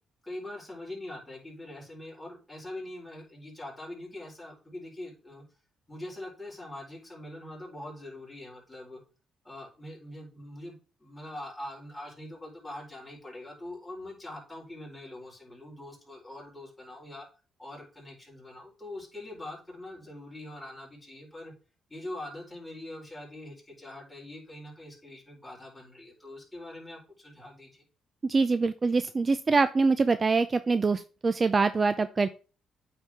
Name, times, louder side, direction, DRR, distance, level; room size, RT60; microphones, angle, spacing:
voice 1, 0.2-5.4 5.9-9.0 9.4-17.2 17.6-21.5 21.9-27.8, left 1 dB, 10° left, -3 dB, 4.2 m, -43 dB
voice 2, 28.2-32.3, right 4 dB, 30° right, 12 dB, 0.5 m, -24 dB
8.8 x 4.6 x 3.5 m, 0.35 s
cardioid pair, 90°, 0 cm